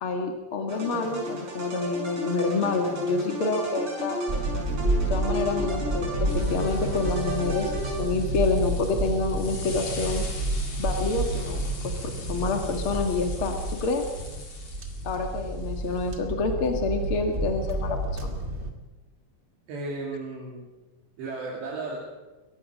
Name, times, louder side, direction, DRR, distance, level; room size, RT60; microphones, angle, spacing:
voice 1, 0.0-4.4 5.1-10.2 10.8-14.0 15.0-18.4, left 3 dB, 55° left, 4 dB, 1.5 m, -28 dB
sound 1, 0.7-8.4, equal, 25° right, 6.6 m, -33 dB
sound 2, 4.3-18.7, right 1 dB, 60° right, 0.7 m, -30 dB
sound 3, 6.3-16.1, left 4 dB, 35° left, 3.5 m, -43 dB
voice 2, 19.7-20.7 21.2-22.0, right 3 dB, 75° right, -2 dB, 4.8 m, -34 dB
22.5 x 19.5 x 6.3 m, 1.2 s
omnidirectional pair, 5.1 m